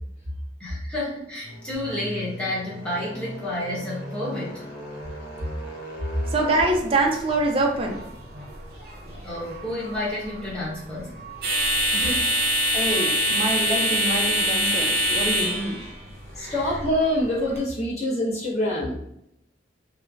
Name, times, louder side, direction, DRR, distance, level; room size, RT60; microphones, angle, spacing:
voice 1, 0.6-4.6 9.2-11.2 11.9-12.4 16.4-16.6, left 1 dB, 5° left, -7 dB, 0.8 m, -31 dB
sound 1, 1.4-15.7, equal, 70° left, 0.8 m, -41 dB
voice 2, 6.3-8.0 12.7-15.8, right 2 dB, 30° right, 1 dB, 0.4 m, -25 dB
sound 2, 6.3-17.6, equal, 60° right, 0.8 m, -26 dB
voice 3, 16.4-19.0, left 1 dB, 40° left, -6 dB, 1.0 m, -25 dB
3.0 x 2.1 x 2.4 m, 0.78 s
head